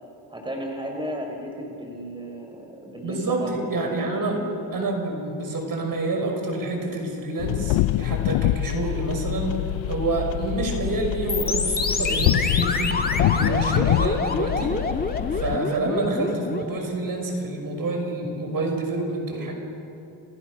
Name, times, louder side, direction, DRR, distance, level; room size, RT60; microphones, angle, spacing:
voice 1, 0.3-4.5 16.1-16.3, equal, 10° right, 1 dB, 4.9 m, -35 dB
voice 2, 3.0-4.4 4.7-14.8 15.3-19.6, right 2 dB, 50° right, 2 dB, 6.1 m, -28 dB
sound 1, 7.4-15.6, left 16 dB, 90° left, 0.7 m, -25 dB
sound 2, 11.3-16.8, left 3 dB, 20° left, 2.0 m, -27 dB
28.5 x 28.5 x 6.5 m, 3.0 s
cardioid pair, 100°, 44 cm